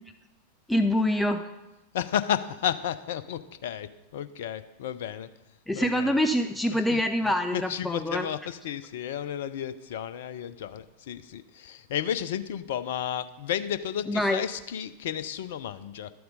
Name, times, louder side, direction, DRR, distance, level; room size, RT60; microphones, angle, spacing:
voice 1, 0.7-1.5 5.7-8.3 14.1-14.4, left 1 dB, 5° left, 7 dB, 0.5 m, -25 dB
voice 2, 1.9-5.3 5.7-6.2 6.9-7.0 7.5-16.1, left 9 dB, 55° left, 14 dB, 0.6 m, -32 dB
12.0 x 7.8 x 5.1 m, 1.0 s
figure-of-eight pair, 90°, 0 cm